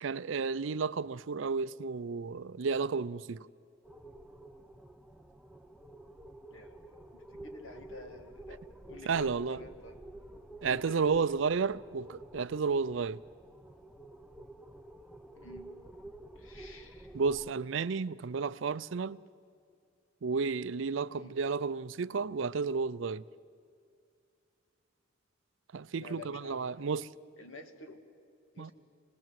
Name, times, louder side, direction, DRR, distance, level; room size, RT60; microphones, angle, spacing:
voice 1, 0.0-3.5 9.1-9.6 10.6-13.2 17.1-19.2 20.2-23.2 25.7-27.1 28.6-28.7, right 5 dB, 70° right, 0.5 m, -32 dB
sound 1, 3.9-17.5, right 1 dB, 5° right, 0.6 m, -50 dB
voice 2, 6.5-10.0 10.6-11.4 15.4-15.7 16.4-17.1 21.1-21.4 25.9-26.9 27.4-28.0 28.5-28.7, left 3 dB, 80° left, 1.9 m, -50 dB
26.5 x 19.5 x 7.7 m
head